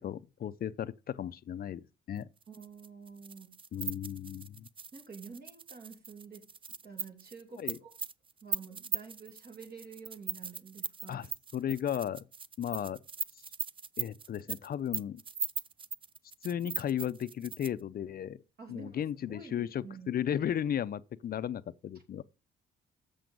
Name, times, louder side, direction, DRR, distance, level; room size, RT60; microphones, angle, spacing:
voice 1, 0.0-2.3 3.7-4.7 7.6-7.8 11.1-11.3 11.5-12.2 12.6-13.0 14.0-15.2 16.4-18.4 18.7-22.2, left 10 dB, 50° left, 0.5 m, -35 dB
sound 1, 2.4-17.8, right 5 dB, 25° right, 0.4 m, -39 dB
voice 2, 2.5-3.6 4.9-6.5 6.8-7.9 8.4-11.3 18.6-20.1, right 5 dB, 50° right, 2.8 m, -49 dB
7.7 x 6.9 x 5.3 m
cardioid pair, 90°, 20 cm